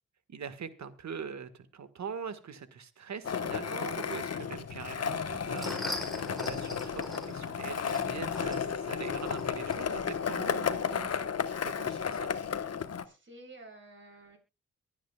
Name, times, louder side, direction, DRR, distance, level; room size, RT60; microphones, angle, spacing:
voice 1, 0.3-11.3 11.6-12.6, right 6 dB, 70° right, 12 dB, 1.6 m, -43 dB
Skateboard, 3.2-13.0, left 7 dB, 60° left, 1.1 m, -33 dB
sound 1, 5.2-10.4, left 1 dB, ahead, 4.5 m, -43 dB
voice 2, 12.8-14.4, right 2 dB, 40° right, 1 dB, 7.1 m, -52 dB
23.5 x 9.1 x 2.3 m, 0.29 s
cardioid pair, 60°, 29 cm